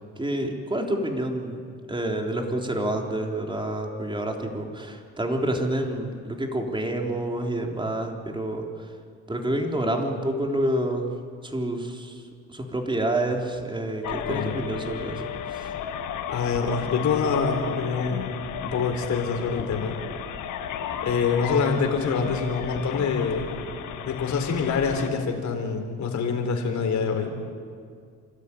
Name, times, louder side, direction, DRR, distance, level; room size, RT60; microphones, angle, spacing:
voice 1, 0.2-1.6 1.9-8.9 9.3-11.1 11.4-12.2 12.5-15.7, right 1 dB, 15° right, 2 dB, 3.6 m, -28 dB
sound 1, 14.0-25.1, left 8 dB, 90° left, 1.6 m, -34 dB
voice 2, 16.3-18.2 18.6-20.0 21.0-23.5 24.1-27.3, left 5 dB, 65° left, 4 dB, 4.1 m, -25 dB
28.5 x 13.0 x 9.9 m, 2.2 s
cardioid pair, 90°, 30 cm